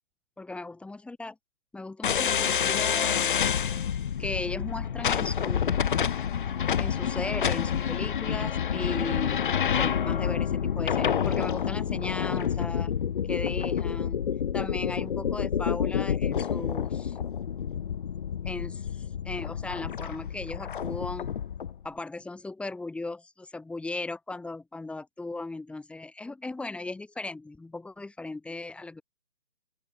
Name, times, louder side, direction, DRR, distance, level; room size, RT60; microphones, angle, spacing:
voice 1, 0.4-1.3 1.7-3.3 4.2-5.8 6.8-9.4 9.7-12.9 13.3-14.2 14.5-17.2 18.4-21.3 21.8-29.0, left 2 dB, 5° left, 7.6 m, -37 dB
sound 1, 2.0-21.7, left 8 dB, 45° left, 6.6 m, -28 dB
open air
figure-of-eight pair, 140°, 35 cm